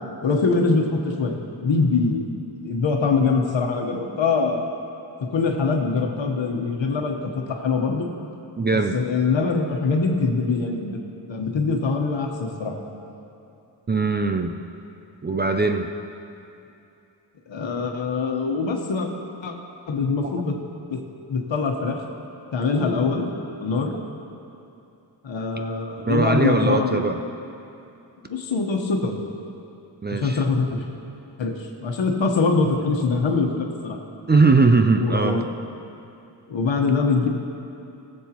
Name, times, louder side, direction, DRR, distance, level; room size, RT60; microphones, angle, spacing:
voice 1, 0.2-2.2 2.6-4.6 5.2-8.1 8.7-11.0 11.3-12.8 17.5-19.1 19.4-19.5 19.9-20.6 20.9-21.0 21.3-22.0 22.5-23.3 23.6-23.9 25.2-27.1 28.3-29.1 30.1-30.8 31.4-34.0 35.0-35.5 36.5-37.3, left 4 dB, 80° left, 2 dB, 1.2 m, -23 dB
voice 2, 8.6-9.0 13.9-14.6 15.2-16.0 20.2-20.4 26.1-27.2 30.0-30.4 34.3-35.5, right 3 dB, 25° right, 5 dB, 0.4 m, -20 dB
20.0 x 7.5 x 3.0 m, 2.8 s
wide cardioid pair, 140°, 44 cm